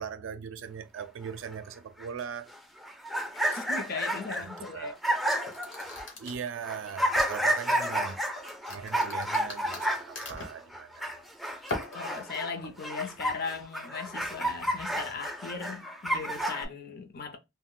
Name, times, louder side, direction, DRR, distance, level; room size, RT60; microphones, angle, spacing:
voice 1, 0.0-2.5 3.5-3.6 4.3-5.0 6.2-8.2 8.7-11.2, right 7 dB, 75° right, 0.4 m, -40 dB
sound 1, 1.3-1.4 1.5-1.6 2.0-2.1 2.5-6.1 6.6-12.5 12.8-16.6, right 1 dB, ahead, 0.4 m, -31 dB
voice 2, 3.5-4.9 11.9-17.4, left 5 dB, 50° left, 0.5 m, -38 dB
sound 2, 5.3-7.6 8.1-10.6 11.6-12.7, left 2 dB, 70° left, 1.0 m, -40 dB
2.4 x 2.1 x 3.6 m
head